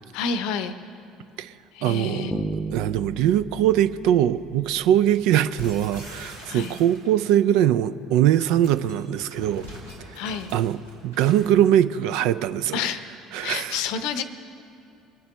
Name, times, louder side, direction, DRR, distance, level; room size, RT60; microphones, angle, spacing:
voice 1, 0.1-0.8 1.7-2.5 6.5-6.8 10.2-10.5 12.7-13.0 13.4-14.2, left 6 dB, 60° left, 12 dB, 0.7 m, -29 dB
voice 2, 1.8-2.3 2.7-9.7 10.5-10.8 11.0-12.8 13.3-13.8, right 11 dB, 60° right, 13 dB, 0.4 m, -21 dB
sound 1, 2.3-5.3, right 3 dB, ahead, 0.9 m, -34 dB
sound 2, 5.6-7.3 8.3-11.6, equal, 85° right, 3.5 m, -42 dB
23.0 x 9.3 x 3.3 m, 2.7 s
figure-of-eight pair, 60°, 0 cm